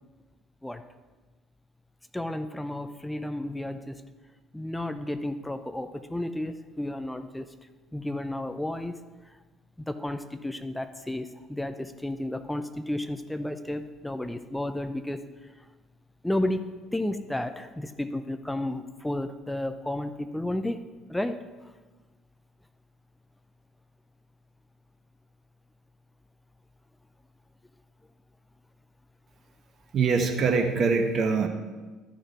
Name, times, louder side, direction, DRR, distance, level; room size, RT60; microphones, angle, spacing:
voice 1, 2.1-4.0 4.5-7.5 7.9-8.9 9.9-15.2 16.2-20.8 21.1-21.4, left 1 dB, 5° left, 10 dB, 0.6 m, -32 dB
voice 2, 29.9-31.5, right 4 dB, 40° right, 5 dB, 1.0 m, -23 dB
12.0 x 6.4 x 4.6 m, 1.3 s
figure-of-eight pair, 55°, 0 cm